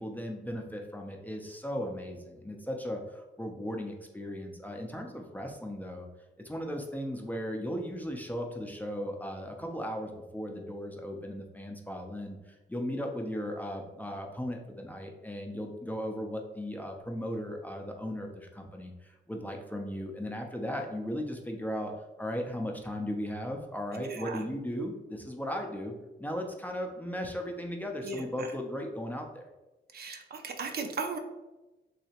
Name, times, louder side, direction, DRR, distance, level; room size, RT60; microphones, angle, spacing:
voice 1, 0.0-6.1 6.4-21.9 22.2-25.9 26.2-29.5, equal, 10° left, 2 dB, 0.4 m, -37 dB
voice 2, 23.9-24.4 28.0-28.2 29.9-31.2, right 4 dB, 55° right, 4 dB, 0.5 m, -36 dB
3.2 x 2.8 x 2.8 m, 1.1 s
cardioid pair, 85°, 20 cm